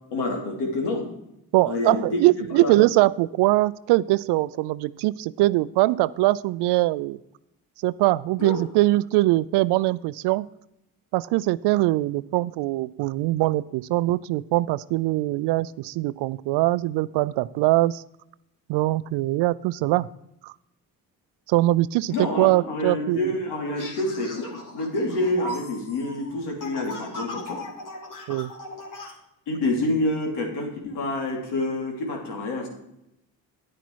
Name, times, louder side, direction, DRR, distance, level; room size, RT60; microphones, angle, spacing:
voice 1, 0.1-1.1 1.7-2.2 2.6-2.7 8.4-8.6 22.1-27.6 29.5-32.7, left 2 dB, 80° left, 1 dB, 2.9 m, -27 dB
voice 2, 1.5-7.2 7.8-10.5 11.1-18.0 18.7-20.1 20.4-20.5 21.5-23.3 28.3-28.5, right 18 dB, 80° right, 19 dB, 0.5 m, -22 dB
sound 1, 23.8-29.1, left 1 dB, 50° left, 2.7 m, -38 dB
9.9 x 9.3 x 4.6 m, 0.82 s
supercardioid pair, 55°, 40 cm